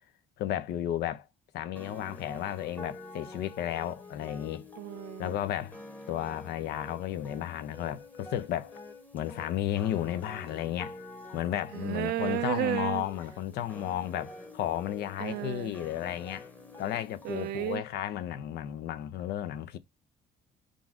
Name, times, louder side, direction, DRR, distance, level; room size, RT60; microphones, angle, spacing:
voice 1, 0.4-1.3 1.5-4.7 5.2-5.8 6.1-8.8 9.1-11.0 11.3-16.5 16.8-19.8, left 11 dB, 75° left, 0.6 m, -33 dB
sound 1, 1.8-17.8, left 2 dB, 10° left, 1.0 m, -48 dB
voice 2, 4.8-5.4 11.7-13.0 15.2-15.8 17.2-17.8, right 14 dB, 70° right, 0.4 m, -32 dB
3.9 x 2.4 x 4.6 m
cardioid pair, 110°, 17 cm